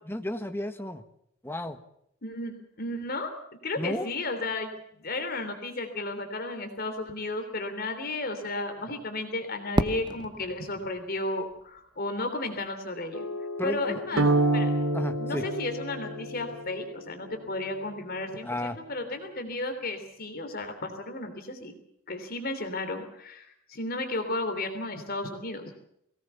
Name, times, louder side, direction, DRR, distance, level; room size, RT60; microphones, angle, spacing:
voice 1, 0.1-1.0 1.4-1.8 3.8-4.1 13.6-14.3 14.9-15.4 18.4-18.8, left 1 dB, 10° left, 7 dB, 1.5 m, -33 dB
voice 2, 2.2-3.3 3.6-13.3 13.6-14.7 15.2-21.7 22.1-25.7, left 2 dB, 45° left, 7 dB, 3.2 m, -33 dB
Fireworks, 9.8-12.6, right 1 dB, 20° right, 1.0 m, -32 dB
sound 1, 13.1-18.2, left 5 dB, 90° left, 2.0 m, -37 dB
sound 2, 14.2-16.5, right 2 dB, 70° right, 1.0 m, -26 dB
22.0 x 18.5 x 7.1 m, 0.74 s
head